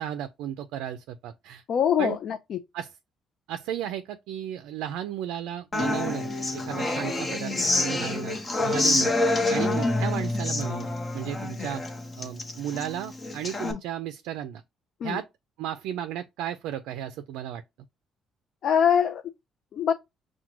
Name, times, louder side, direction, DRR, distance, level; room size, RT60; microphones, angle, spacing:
voice 1, 0.0-1.6 2.0-2.2 2.7-2.9 3.5-9.1 9.5-11.8 12.2-14.6 15.0-15.3 15.6-17.6, right 10 dB, 90° right, 0.3 m, -34 dB
voice 2, 1.7-2.6 11.6-11.7 13.6-13.8 15.0-15.2 18.6-19.2 19.7-19.9, left 8 dB, 65° left, 0.4 m, -24 dB
Human voice / Acoustic guitar, 5.7-13.7, left 2 dB, 30° left, 0.8 m, -27 dB
5.8 x 2.2 x 2.9 m
cardioid pair, 90°, 0 cm